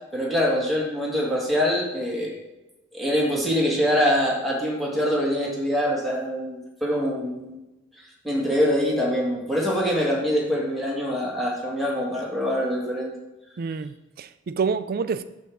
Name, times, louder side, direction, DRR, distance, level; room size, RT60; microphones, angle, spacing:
voice 1, 0.1-2.3 2.9-7.6 8.2-13.2, equal, ahead, -4 dB, 1.5 m, -24 dB
voice 2, 13.6-15.2, right 5 dB, 50° right, 12 dB, 0.4 m, -28 dB
6.9 x 3.4 x 6.1 m, 0.99 s
head